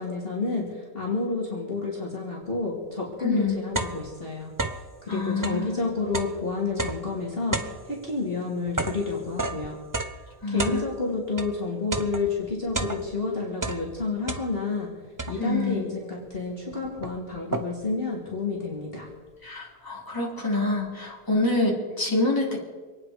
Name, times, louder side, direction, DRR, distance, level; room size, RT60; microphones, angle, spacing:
voice 1, 0.0-4.5 5.0-9.8 10.5-14.9 15.3-19.1, left 4 dB, 35° left, -3 dB, 3.0 m, -30 dB
sound 1, 2.8-2.9 3.3-5.0 5.3-11.6 11.9-13.3 13.6-14.8 15.2-15.7 16.3-16.4 16.7-18.0, right 2 dB, 25° right, 0.4 m, -33 dB
voice 2, 3.2-3.6 5.1-5.8 10.4-10.8 15.4-15.8 19.4-22.6, left 2 dB, 10° left, -3 dB, 3.2 m, -26 dB
26.0 x 9.7 x 5.1 m, 1.3 s
omnidirectional pair, 1.8 m